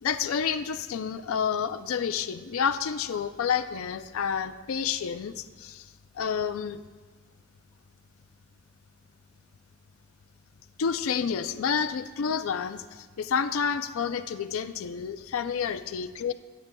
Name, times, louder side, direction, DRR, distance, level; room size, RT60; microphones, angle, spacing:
voice 1, 0.0-5.9 6.1-6.8 10.8-16.3, left 7 dB, 70° left, 9 dB, 0.4 m, -29 dB
20.5 x 9.4 x 2.3 m, 1.4 s
head